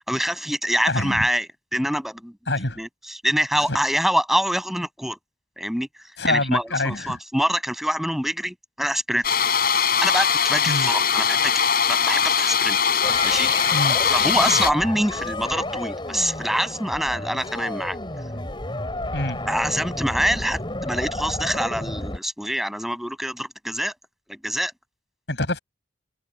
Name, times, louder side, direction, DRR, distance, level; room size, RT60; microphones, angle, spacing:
voice 1, 0.1-2.3 2.8-5.2 5.6-9.3 9.6-12.8 13.2-13.5 14.0-18.0 19.4-23.9 24.3-24.7, equal, ahead, 7.1 m, -25 dB
voice 2, 0.9-1.3 2.5-2.8 3.7-3.8 6.2-7.2 10.7-10.9 13.7-14.0 19.1-19.4 25.3-25.6, left 2 dB, 70° left, 7.4 m, -25 dB
sound 1, 9.2-14.7, left 7 dB, 55° left, 7.4 m, -21 dB
sound 2, 13.0-22.2, left 2 dB, 25° left, 4.2 m, -31 dB
open air
head